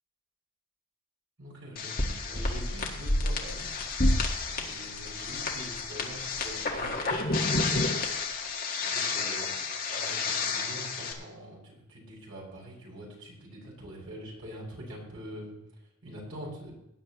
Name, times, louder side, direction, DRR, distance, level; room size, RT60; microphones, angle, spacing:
voice 1, 1.4-3.7 4.6-7.6 8.8-9.6 9.9-16.7, equal, 75° right, -4 dB, 5.6 m, -44 dB
sound 1, 1.8-11.1, left 3 dB, 45° left, 1.6 m, -30 dB
18.5 x 9.9 x 3.0 m, 0.84 s
head